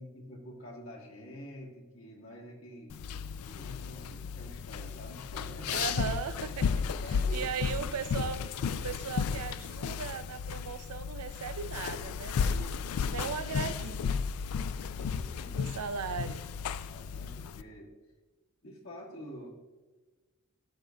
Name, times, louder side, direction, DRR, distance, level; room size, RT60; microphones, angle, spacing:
voice 1, 0.0-5.8 7.0-7.8 13.2-13.3 14.9-15.7 16.9-17.9 18.6-19.5, equal, 65° left, -2 dB, 1.5 m, -47 dB
sound 1, 2.9-17.6, left 6 dB, 85° left, 0.3 m, -34 dB
voice 2, 5.7-6.8 7.3-12.8 13.1-14.2 15.5-16.4, right 6 dB, 90° right, 11 dB, 0.5 m, -38 dB
13.0 x 6.2 x 2.3 m, 1.3 s
head